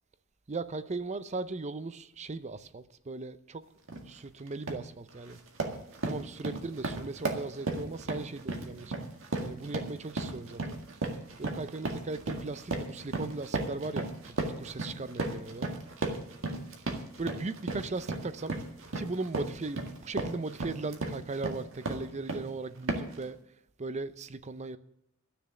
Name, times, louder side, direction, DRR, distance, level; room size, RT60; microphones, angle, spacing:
voice 1, 0.5-3.6 4.1-5.4 6.0-9.1 9.4-10.8 11.4-15.7 17.2-18.6 18.9-23.4 23.8-24.8, right 3 dB, 35° right, 0.6 m, -38 dB
sound 1, 3.9-4.1 4.5-4.9 5.2-22.5 22.9-23.2, right 2 dB, 65° right, 1.8 m, -35 dB
12.5 x 6.9 x 8.7 m
head